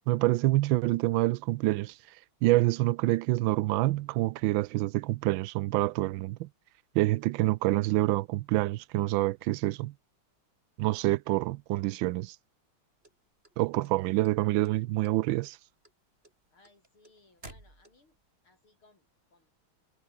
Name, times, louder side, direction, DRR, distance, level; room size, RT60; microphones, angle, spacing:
voice 1, 0.1-1.9 2.4-6.5 6.9-9.9 10.8-12.3 13.6-15.6, right 18 dB, 75° right, 1.3 m, -27 dB
sound 1, 13.0-14.3 14.6-15.2 15.4-18.3, right 2 dB, 25° right, 5.3 m, -52 dB
voice 2, 16.5-18.2 18.4-19.5, left 3 dB, 85° left, 7.9 m, -63 dB
omnidirectional pair, 2.3 m